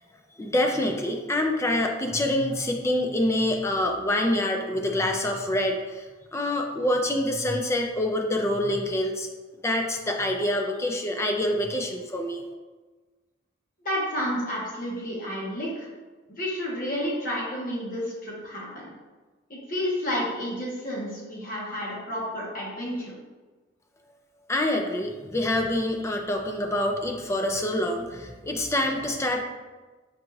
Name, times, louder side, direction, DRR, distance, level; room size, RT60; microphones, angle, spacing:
voice 1, 0.4-6.1 6.3-9.3 9.6-12.4 24.5-29.4, left 1 dB, 15° left, 3 dB, 0.3 m, -26 dB
voice 2, 13.8-15.9 16.4-18.9 19.5-23.2, equal, 50° left, -4 dB, 1.1 m, -31 dB
5.1 x 2.4 x 3.1 m, 1.3 s
head